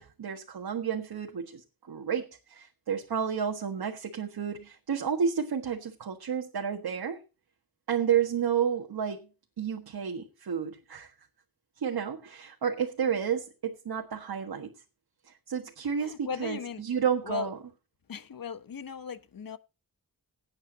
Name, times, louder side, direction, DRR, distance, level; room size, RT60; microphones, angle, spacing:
voice 1, 0.0-7.2 7.9-9.3 9.6-11.1 11.8-14.7 15.2-17.6, right 7 dB, 80° right, 1.6 m, -31 dB
voice 2, 16.0-16.8 17.2-17.5 18.1-19.6, left 6 dB, 65° left, 1.1 m, -37 dB
18.0 x 8.8 x 3.9 m
wide cardioid pair, 85°, 37 cm